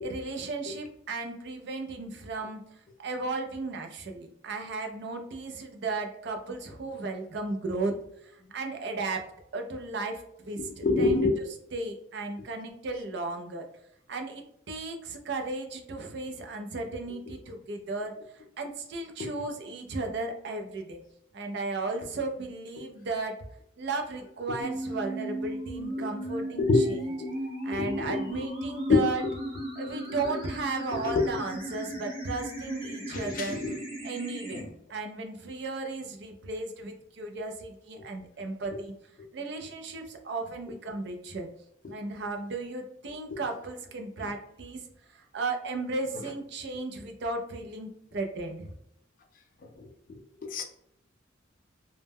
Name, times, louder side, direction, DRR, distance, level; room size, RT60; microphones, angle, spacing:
voice 1, 0.0-2.6 3.0-11.3 11.7-13.7 14.1-21.0 21.3-23.4 23.8-27.1 27.6-29.2 29.8-33.6 34.0-34.6 34.9-38.9 39.3-41.5 41.9-44.8 45.1-48.7, right 3 dB, 55° right, 0.4 m, -35 dB
voice 2, 10.6-11.3 19.2-19.3 26.6-26.9 27.2-27.3 27.7-28.2 28.9-29.0 30.9-31.3 33.1-33.8 34.5-34.7 43.3-43.4 50.1-50.6, left 3 dB, 45° left, 0.3 m, -26 dB
sound 1, 24.6-34.6, right 1 dB, 30° right, 0.7 m, -36 dB
2.1 x 2.1 x 3.3 m
head